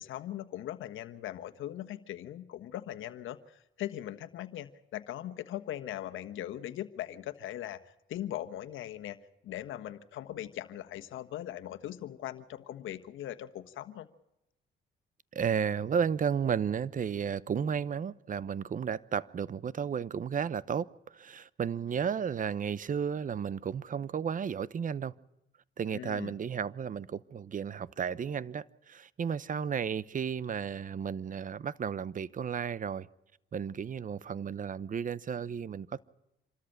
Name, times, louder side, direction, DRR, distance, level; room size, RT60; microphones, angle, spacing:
voice 1, 0.0-7.8 8.1-9.2 9.4-14.1 25.9-26.3, left 12 dB, 80° left, 1.4 m, -40 dB
voice 2, 15.3-25.1 25.8-33.1 33.5-36.0, right 7 dB, 40° right, 0.9 m, -33 dB
27.0 x 13.5 x 8.8 m
cardioid pair, 90°, 20 cm